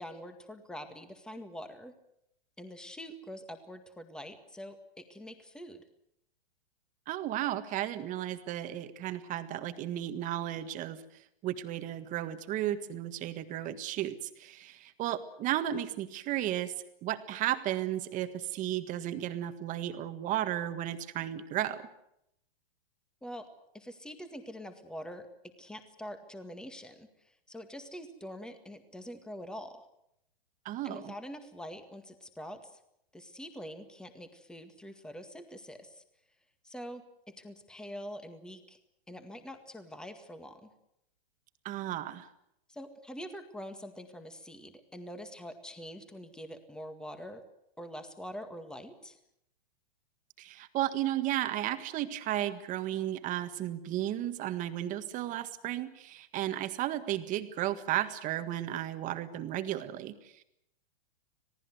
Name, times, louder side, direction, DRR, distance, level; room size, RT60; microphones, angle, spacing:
voice 1, 0.0-1.9 2.6-5.8 23.2-23.5 23.7-25.3 25.6-27.1 27.5-29.8 30.8-32.8 33.1-36.0 36.6-38.8 39.1-40.7 42.7-47.4 47.8-49.2, equal, 5° left, 8 dB, 1.9 m, -45 dB
voice 2, 7.1-11.0 11.4-16.7 17.0-21.9 30.7-31.1 41.7-42.3 50.4-60.4, right 13 dB, 25° right, 10 dB, 1.7 m, -34 dB
26.5 x 18.0 x 8.0 m, 0.78 s
hypercardioid pair, 150°, 29 cm